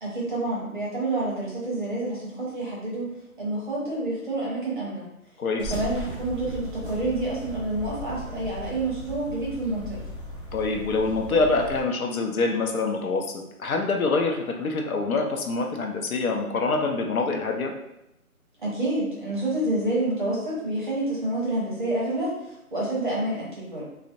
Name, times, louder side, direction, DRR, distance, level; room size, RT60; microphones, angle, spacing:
voice 1, 0.0-5.0 5.6-10.0 18.6-23.8, right 2 dB, 35° right, -6 dB, 0.7 m, -28 dB
voice 2, 5.4-5.7 10.5-17.7, left 3 dB, 70° left, 2 dB, 0.5 m, -25 dB
sound 1, 5.6-11.8, equal, 35° left, 1.1 m, -37 dB
2.5 x 2.0 x 2.6 m, 0.85 s
hypercardioid pair, 165°, 45 cm